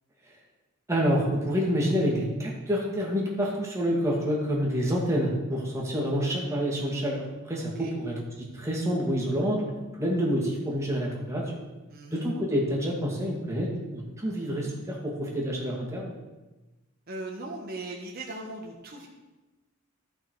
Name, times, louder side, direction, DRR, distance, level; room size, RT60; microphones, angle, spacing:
voice 1, 0.9-8.1 8.5-11.4 12.1-16.1, equal, 15° right, -3 dB, 2.1 m, -28 dB
voice 2, 7.6-7.9 11.9-12.2 17.1-19.1, right 2 dB, 45° right, -2 dB, 1.2 m, -39 dB
12.5 x 5.8 x 4.7 m, 1.1 s
head